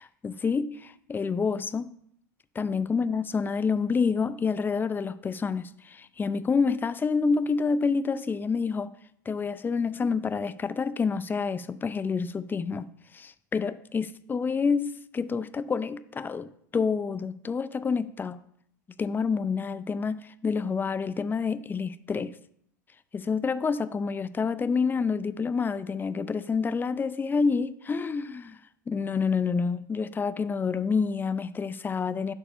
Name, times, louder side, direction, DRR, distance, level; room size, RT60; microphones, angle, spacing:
voice 1, 0.0-1.9 2.6-8.9 9.3-12.9 13.1-18.4 19.0-22.4 23.1-28.6 28.9-32.3, left 5 dB, 20° left, 0.5 m, -28 dB
11.0 x 4.8 x 5.5 m
hypercardioid pair, 80°, 10 cm